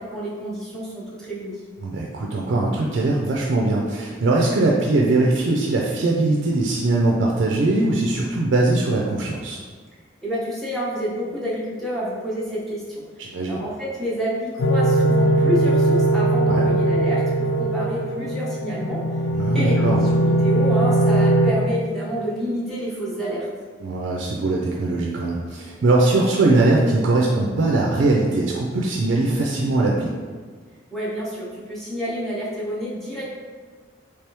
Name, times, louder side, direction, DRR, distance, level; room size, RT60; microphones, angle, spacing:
voice 1, 0.0-1.6 10.2-12.8 13.5-19.0 19.5-23.5 30.9-33.3, equal, ahead, -8 dB, 0.8 m, -28 dB
voice 2, 1.8-9.6 13.2-13.6 16.5-16.6 19.3-20.0 23.8-30.1, right 2 dB, 70° right, -2 dB, 0.4 m, -21 dB
sound 1, 14.6-21.5, right 1 dB, 70° left, 0.3 m, -20 dB
3.3 x 3.3 x 2.9 m, 1.5 s
head